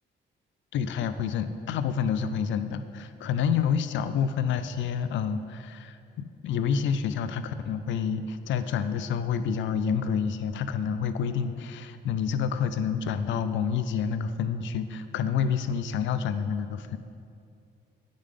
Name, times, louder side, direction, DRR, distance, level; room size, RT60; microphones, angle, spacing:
voice 1, 0.7-6.0 6.4-17.0, left 7 dB, 70° left, 11 dB, 0.4 m, -28 dB
9.3 x 5.1 x 3.7 m, 2.5 s
cardioid pair, 90°, 20 cm